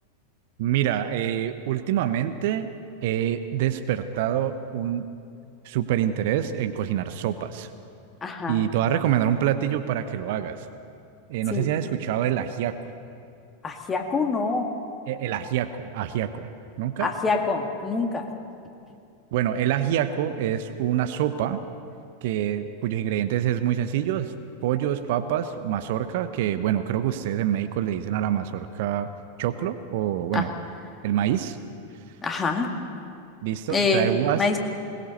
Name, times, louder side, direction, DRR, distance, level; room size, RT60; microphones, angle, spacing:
voice 1, 0.6-2.7 3.0-5.1 5.6-7.7 8.5-10.7 11.3-12.8 15.1-16.5 16.8-17.1 19.3-21.6 22.2-24.3 24.6-29.1 29.4-30.5 31.0-31.6 33.4-34.5, right 11 dB, 50° right, 10 dB, 0.9 m, -26 dB
voice 2, 8.2-8.6 11.5-11.7 13.6-14.7 17.0-18.3 30.3-30.5 32.2-32.7 33.7-34.6, left 4 dB, 20° left, 3 dB, 2.2 m, -25 dB
21.5 x 19.5 x 6.6 m, 2.5 s
figure-of-eight pair, 90°, 0 cm